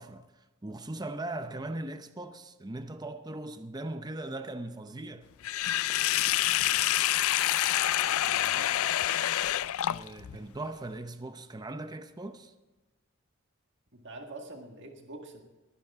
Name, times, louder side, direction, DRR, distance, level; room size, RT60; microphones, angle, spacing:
voice 1, 0.0-5.3 9.9-12.5, right 2 dB, 20° right, 0.6 m, -39 dB
Sink (filling or washing), 5.4-10.4, left 13 dB, 70° left, 0.4 m, -27 dB
voice 2, 8.0-8.7 13.9-15.4, right 2 dB, 55° right, 1.8 m, -46 dB
19.5 x 10.5 x 3.6 m
head